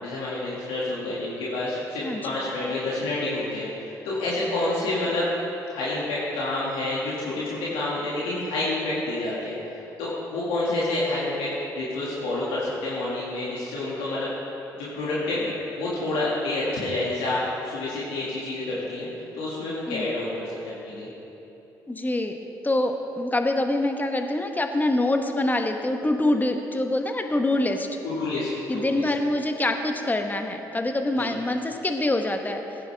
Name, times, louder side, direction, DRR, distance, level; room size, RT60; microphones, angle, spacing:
voice 1, 0.0-5.2 5.7-11.5 11.7-14.3 14.8-19.1 19.3-21.1 28.0-29.0 31.2-31.3, left 2 dB, 80° left, -7 dB, 2.1 m, -28 dB
voice 2, 21.9-22.4 22.6-27.9 28.7-32.6, left 1 dB, 20° left, 5 dB, 1.1 m, -25 dB
15.5 x 9.7 x 3.5 m, 3.0 s
hypercardioid pair, 50°, 9 cm